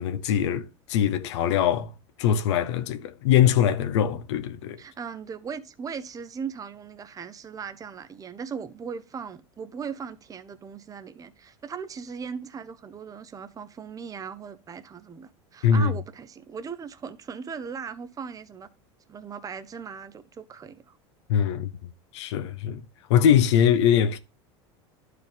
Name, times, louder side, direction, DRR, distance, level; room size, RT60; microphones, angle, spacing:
voice 1, 0.0-1.9 2.2-4.8 15.6-15.9 21.3-21.7 22.1-22.8 23.1-24.2, left 9 dB, 75° left, 0.7 m, -22 dB
voice 2, 4.8-18.7 19.1-21.0, right 6 dB, 25° right, 0.8 m, -38 dB
11.5 x 4.8 x 3.4 m
hypercardioid pair, 100°, 15 cm